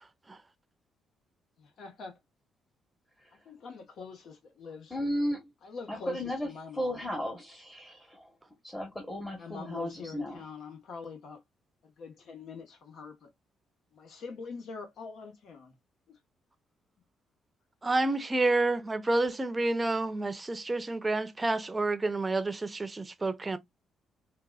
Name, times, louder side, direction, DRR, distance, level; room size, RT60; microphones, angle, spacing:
voice 1, 1.6-2.1 3.4-4.9 5.6-7.0 9.4-11.4 12.0-13.3 13.9-15.7, left 4 dB, 70° left, 1.2 m, -43 dB
voice 2, 4.9-5.5 5.9-8.4 8.6-10.5, equal, 10° left, 1.0 m, -35 dB
voice 3, 17.8-23.6, right 2 dB, 20° right, 0.6 m, -29 dB
3.9 x 2.4 x 2.3 m
cardioid pair, 90°, 0 cm